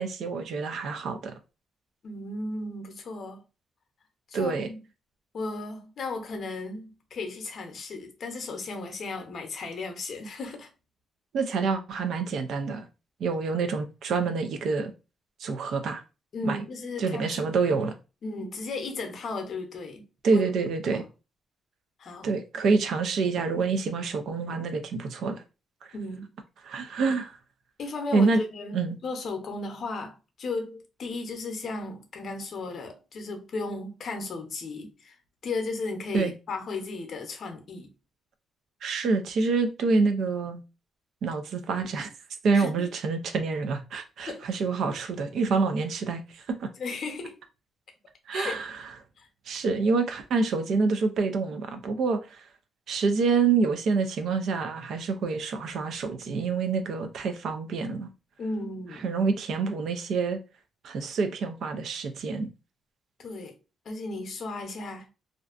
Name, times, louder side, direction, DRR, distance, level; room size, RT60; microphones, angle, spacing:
voice 1, 0.0-1.4 4.3-4.7 11.3-12.9 13.2-14.9 15.4-16.0 16.4-16.6 17.0-17.9 20.2-21.1 22.2-25.4 26.6-27.3 28.1-28.4 28.7-29.0 36.1-36.3 38.8-40.6 41.2-42.1 42.4-46.7 48.3-48.8 49.5-52.4 52.9-58.1 59.0-60.4 60.8-62.5, right 4 dB, 65° right, 0.4 m, -27 dB
voice 2, 2.0-3.4 4.3-4.8 5.3-10.7 16.3-17.5 18.2-20.0 20.3-20.4 20.9-21.1 22.0-22.4 25.9-26.3 27.8-35.1 35.4-37.9 42.5-42.9 44.3-44.5 46.8-47.4 48.3-48.6 49.2-49.3 58.4-59.1 63.2-63.5 63.9-65.1, left 3 dB, 55° left, 0.7 m, -35 dB
2.5 x 2.2 x 2.4 m
cardioid pair, 90°, 0 cm